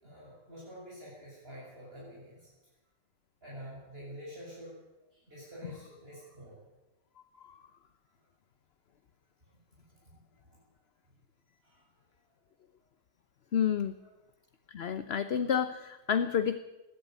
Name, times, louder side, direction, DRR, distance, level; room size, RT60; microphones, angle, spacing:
voice 1, 0.0-2.5 3.4-4.8 5.1-6.6 10.4-10.6 11.6-11.8 14.0-14.1, equal, 35° right, -7 dB, 7.6 m, -48 dB
voice 2, 13.5-14.0 14.7-16.6, left 8 dB, 50° left, 11 dB, 0.9 m, -29 dB
20.5 x 15.5 x 9.4 m, 1.0 s
omnidirectional pair, 1.7 m